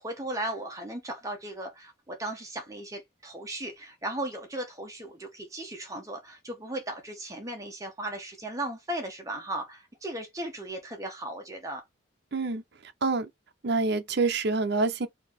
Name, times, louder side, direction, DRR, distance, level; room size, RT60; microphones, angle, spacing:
voice 1, 0.0-11.8, right 1 dB, 15° right, 0.9 m, -36 dB
voice 2, 12.3-13.3 13.6-15.1, right 3 dB, 55° right, 0.6 m, -27 dB
4.0 x 2.7 x 3.3 m
head